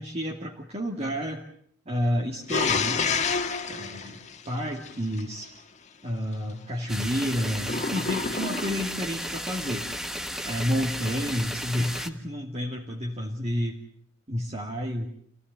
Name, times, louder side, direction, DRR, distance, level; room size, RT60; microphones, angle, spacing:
voice 1, 0.0-1.4 1.9-3.2 3.7-5.5 6.0-9.9 10.4-13.8 14.3-15.1, equal, 35° right, -1 dB, 2.6 m, -30 dB
sound 1, 2.5-5.2 7.6-9.0, left 5 dB, 40° left, 1.8 m, -29 dB
sound 2, 6.9-12.1, equal, ahead, 1.4 m, -34 dB
28.0 x 17.0 x 9.2 m, 0.63 s
head